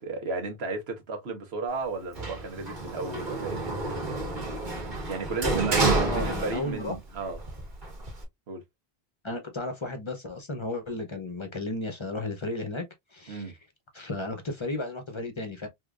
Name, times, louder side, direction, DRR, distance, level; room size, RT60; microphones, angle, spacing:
voice 1, 0.0-3.8 5.1-7.4 8.5-8.6 13.3-13.5, right 3 dB, 75° right, 1.2 m, -34 dB
Sliding door, 2.2-7.0 7.3-8.2, right 3 dB, 50° right, 1.3 m, -29 dB
voice 2, 5.9-6.9 9.2-12.8 13.1-13.5 13.9-15.7, left 2 dB, 35° left, 0.6 m, -34 dB
3.6 x 2.8 x 2.3 m
omnidirectional pair, 1.1 m